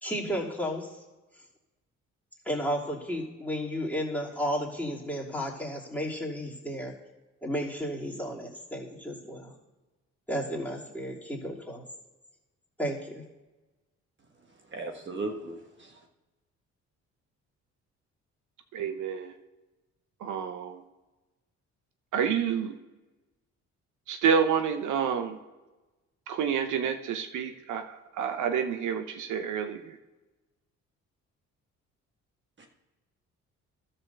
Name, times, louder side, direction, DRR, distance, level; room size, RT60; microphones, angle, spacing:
voice 1, 0.0-1.0 2.4-6.9 7.4-9.5 10.3-11.8 12.8-13.2, equal, 5° left, -4 dB, 3.0 m, -33 dB
voice 2, 14.7-16.0 32.6-32.7, right 2 dB, 40° right, 2 dB, 1.4 m, -37 dB
voice 3, 18.7-19.4 20.2-20.8 22.1-22.8 24.1-25.4 26.3-30.0, right 7 dB, 80° right, 8 dB, 0.9 m, -29 dB
12.0 x 4.3 x 6.8 m, 1.1 s
cardioid pair, 90°, 30 cm